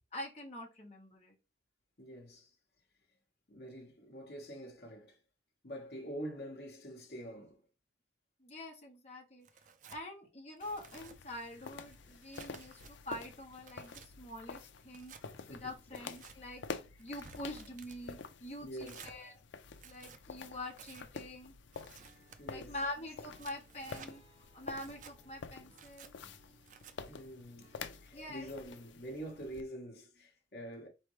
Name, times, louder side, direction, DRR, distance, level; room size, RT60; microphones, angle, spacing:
voice 1, 0.1-1.3 8.4-9.5 9.9-15.1 15.5-16.6 17.0-19.4 19.8-21.5 22.5-24.2 24.5-26.1 28.1-28.5, left 1 dB, 35° left, 1.3 m, -45 dB
voice 2, 2.0-2.5 3.5-5.2 5.6-7.6 15.4-15.7 18.6-19.1 20.1-20.2 22.4-22.8 26.4-26.6 27.1-30.9, right 1 dB, 55° left, 1.2 m, -46 dB
Tearing, 9.4-10.0 10.6-11.2 11.7-12.9 13.4-14.1 14.9-15.2 15.9-16.4 17.0-18.0 18.8-19.2 19.7-20.2 20.7-21.1 21.7-22.4 23.1-24.1 24.7-25.1 25.7-26.1 26.7-26.9, right 7 dB, 45° right, 0.4 m, -55 dB
sound 1, 10.6-29.6, left 5 dB, 80° left, 0.5 m, -49 dB
Acoustic guitar / Strum, 22.0-29.2, right 2 dB, 20° right, 2.4 m, -67 dB
4.3 x 3.3 x 3.1 m
head